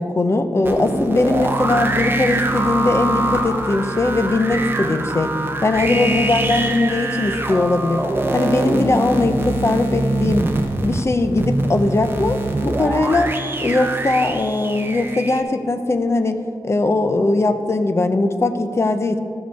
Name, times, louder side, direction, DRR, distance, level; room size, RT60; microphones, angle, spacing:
voice 1, 0.0-5.3 5.6-8.0 8.3-10.5 10.8-13.3 13.6-19.2, left 2 dB, 35° left, 8 dB, 0.6 m, -20 dB
sound 1, 0.6-15.4, right 2 dB, 25° right, 0.7 m, -23 dB
13.5 x 6.4 x 4.7 m, 2.6 s
wide cardioid pair, 125°, 8 cm